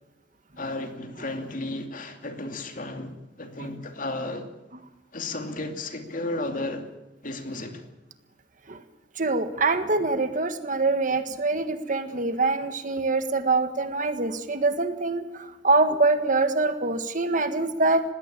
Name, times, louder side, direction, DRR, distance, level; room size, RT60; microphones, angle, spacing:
voice 1, 0.6-4.5 5.1-6.9 7.2-7.9, left 2 dB, 45° left, 6 dB, 2.7 m, -33 dB
voice 2, 9.2-18.0, right 3 dB, 45° right, 9 dB, 1.7 m, -24 dB
20.5 x 16.5 x 8.8 m, 1.0 s
head